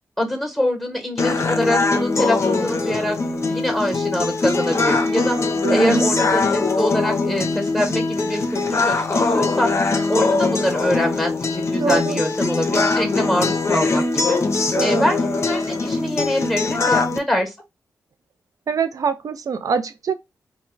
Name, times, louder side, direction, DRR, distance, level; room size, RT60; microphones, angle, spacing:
voice 1, 0.2-3.2 3.5-9.7 10.1-14.4 14.8-17.5, left 1 dB, 5° left, 1.0 m, -24 dB
sound 1, 1.2-17.2, left 3 dB, 45° left, 0.5 m, -21 dB
voice 2, 5.6-6.0 11.8-12.2 14.8-15.1 18.7-20.1, right 6 dB, 60° right, 0.4 m, -23 dB
2.2 x 2.0 x 3.7 m
supercardioid pair, 45°, 7 cm